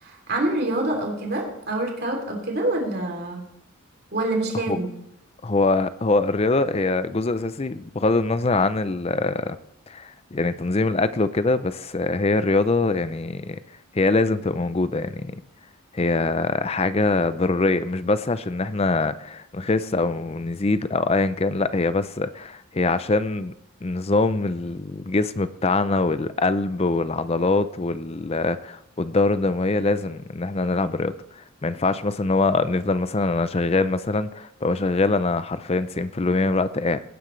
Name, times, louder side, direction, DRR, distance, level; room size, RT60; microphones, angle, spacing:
voice 1, 0.0-3.4 4.1-4.9, right 2 dB, 45° right, 2 dB, 3.1 m, -26 dB
voice 2, 5.4-9.6 9.9-13.6 13.9-15.3 15.9-23.5 23.8-37.0, left 3 dB, 25° left, 13 dB, 0.5 m, -23 dB
17.5 x 9.8 x 3.2 m, 0.81 s
head